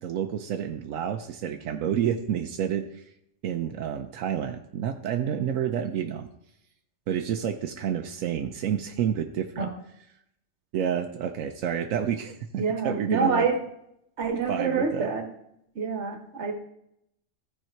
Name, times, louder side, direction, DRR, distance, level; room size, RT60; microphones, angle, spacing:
voice 1, 0.0-3.0 3.4-6.3 7.1-9.7 10.7-13.5 14.5-15.1, right 9 dB, 90° right, 5 dB, 1.0 m, -29 dB
voice 2, 12.6-13.6 14.2-15.2 15.7-16.5, right 4 dB, 65° right, 6 dB, 1.5 m, -26 dB
14.5 x 4.8 x 4.4 m, 0.77 s
omnidirectional pair, 1.3 m